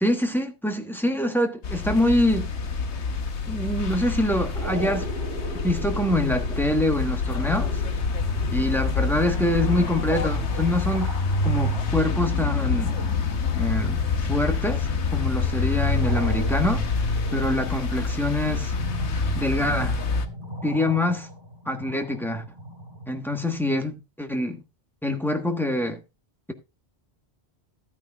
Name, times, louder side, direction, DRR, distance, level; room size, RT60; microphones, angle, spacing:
voice 1, 0.0-2.5 3.5-5.1 5.6-7.8 8.5-11.1 11.4-13.0 13.6-14.0 14.3-16.8 17.3-18.7 19.3-20.0 20.6-21.3 21.6-22.4 23.1-24.6 25.0-26.0, left 1 dB, ahead, 1.2 m, -25 dB
sound 1, 1.6-20.3, left 4 dB, 80° left, 1.3 m, -26 dB
sound 2, 4.5-23.7, right 1 dB, 45° right, 4.3 m, -40 dB
13.5 x 9.3 x 2.4 m
omnidirectional pair, 1.2 m